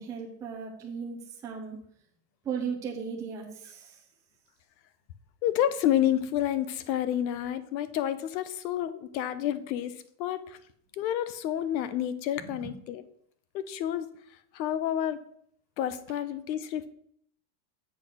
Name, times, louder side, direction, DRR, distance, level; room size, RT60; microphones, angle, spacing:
voice 1, 0.0-1.8 2.4-4.0 12.4-12.7, right 6 dB, 5° right, -1 dB, 0.4 m, -36 dB
voice 2, 5.4-10.6 10.9-13.1 13.5-14.1 14.5-15.2 15.8-16.9, left 11 dB, 85° left, 13 dB, 0.9 m, -29 dB
7.5 x 4.1 x 6.3 m, 0.66 s
supercardioid pair, 165°, 50 cm